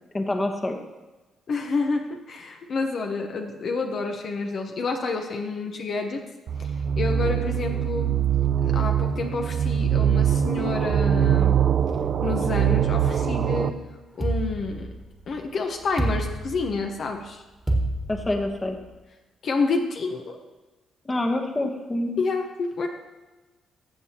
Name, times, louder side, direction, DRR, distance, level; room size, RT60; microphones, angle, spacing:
voice 1, 0.1-0.8 18.1-18.8 21.0-22.2, left 1 dB, 20° left, 4 dB, 1.1 m, -26 dB
voice 2, 1.5-6.2 6.6-6.7 7.0-8.2 8.6-11.6 12.2-13.7 14.1-14.9 15.3-17.4 19.4-20.4 22.2-22.9, left 4 dB, 55° left, 3 dB, 1.0 m, -29 dB
sound 1, 6.5-13.7, right 9 dB, 60° right, 0.4 m, -23 dB
sound 2, 14.2-15.3 16.0-17.0 17.7-18.8, right 1 dB, 10° right, 1.5 m, -28 dB
14.5 x 7.0 x 2.9 m, 1.1 s
cardioid pair, 90°, 0 cm